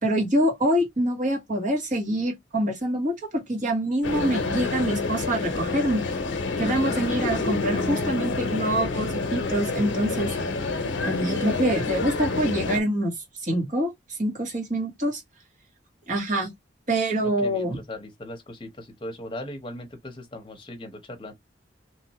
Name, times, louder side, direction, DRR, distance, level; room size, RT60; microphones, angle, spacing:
voice 1, 0.0-6.0 6.6-10.3 11.0-13.1 13.4-13.9 14.2-15.2 16.1-16.5 16.9-17.8, right 1 dB, 45° right, 1.3 m, -25 dB
sound 1, 4.0-12.8, left 3 dB, 85° left, 0.7 m, -28 dB
voice 2, 17.2-21.3, left 1 dB, 25° left, 0.9 m, -39 dB
3.1 x 2.6 x 3.0 m
head